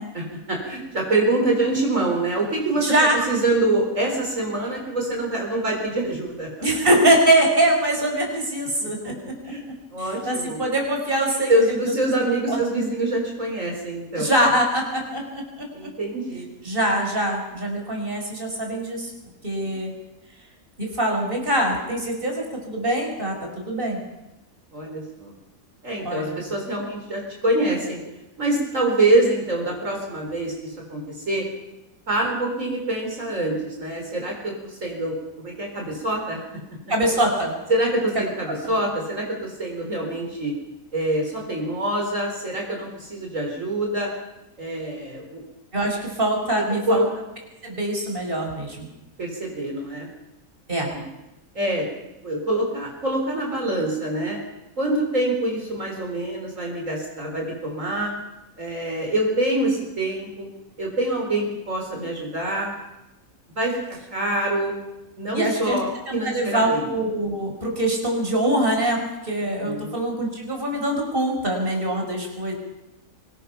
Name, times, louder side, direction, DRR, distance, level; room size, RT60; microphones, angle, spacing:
voice 1, 0.1-2.9 3.3-6.5 9.0-9.1 9.4-9.6 9.9-10.6 11.5-14.3 15.7-16.4 19.6-19.7 24.7-25.3 25.8-28.0 28.4-31.4 32.1-36.4 37.7-40.5 40.9-44.1 44.6-45.4 46.9-47.1 49.2-50.1 50.8-51.0 51.5-51.9 52.2-54.4 54.8-58.1 58.6-60.5 60.8-62.7 63.6-63.8 64.1-64.7 65.2-66.9 69.6-69.9, right 1 dB, 65° right, 0 dB, 4.6 m, -25 dB
voice 2, 2.8-3.2 6.6-9.1 10.0-11.8 12.5-12.6 14.1-15.7 16.6-19.1 19.4-19.9 20.8-24.0 26.0-26.4 36.9-37.5 38.6-38.7 45.7-47.0 47.6-48.9 50.7-50.9 65.3-65.8 66.1-69.0 69.2-72.5, right 1 dB, 40° right, 1 dB, 5.1 m, -23 dB
24.5 x 20.0 x 5.8 m, 0.98 s
omnidirectional pair, 1.5 m